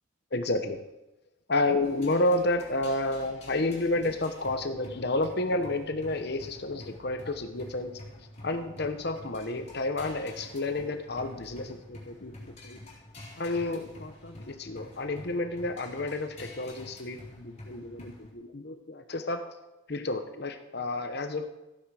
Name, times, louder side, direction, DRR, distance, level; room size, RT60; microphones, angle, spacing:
voice 1, 0.3-0.8 1.5-8.0 8.4-12.3 12.6-12.8 13.4-19.5 19.9-21.5, left 2 dB, 55° left, 8 dB, 0.9 m, -30 dB
sound 1, 1.8-18.3, left 1 dB, 35° left, 4.3 m, -48 dB
15.0 x 10.0 x 4.9 m, 0.98 s
head